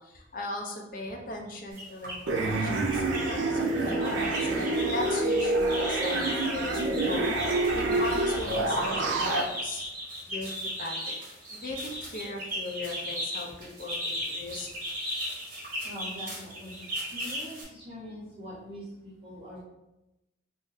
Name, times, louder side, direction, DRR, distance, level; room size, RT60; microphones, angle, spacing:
voice 1, 0.0-9.8 10.3-11.2 11.5-14.7, left 2 dB, 50° left, 1 dB, 0.5 m, -38 dB
sound 1, 1.7-2.2 2.7-3.3 3.6-17.6, equal, 50° right, 1.2 m, -36 dB
sound 2, 2.3-9.4, right 2 dB, 90° right, 0.5 m, -27 dB
voice 2, 15.8-16.9 17.1-19.6, equal, 30° right, -9 dB, 0.9 m, -43 dB
2.6 x 2.5 x 3.9 m, 0.93 s
head